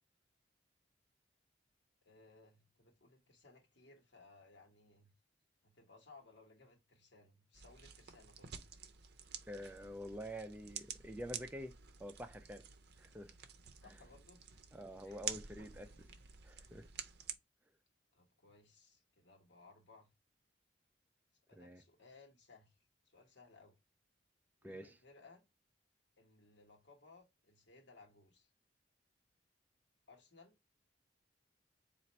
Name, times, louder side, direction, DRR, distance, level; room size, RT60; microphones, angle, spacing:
voice 1, 2.0-5.1 5.6-8.5 13.8-14.6 15.0-15.4 16.1-16.2 18.1-20.1 21.5-22.8 23.0-23.8 24.6-25.4 26.2-28.5 30.1-30.6, left 3 dB, 70° left, 1.3 m, -62 dB
sound 1, 7.5-17.4, right 8 dB, 60° right, 0.6 m, -50 dB
voice 2, 9.5-11.7 12.0-12.6 13.0-13.3 14.7-16.1 16.4-16.9 21.6-21.8 24.6-24.9, equal, 10° right, 0.4 m, -47 dB
4.3 x 2.5 x 4.1 m
head